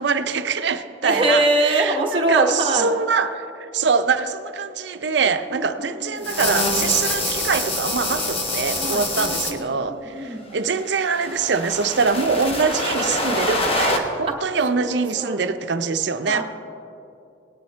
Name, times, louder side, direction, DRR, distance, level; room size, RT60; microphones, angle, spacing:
voice 1, 0.0-1.4 1.7-16.4, right 5 dB, 65° right, 10 dB, 0.6 m, -23 dB
voice 2, 1.0-2.9 5.5-6.3 8.7-10.5 14.3-14.4 14.8-15.5 16.3-16.4, right 1 dB, 30° right, -1 dB, 0.9 m, -24 dB
sound 1, 6.2-9.5 10.6-14.0, left 2 dB, 30° left, 1.1 m, -25 dB
18.5 x 10.0 x 3.3 m, 2.7 s
head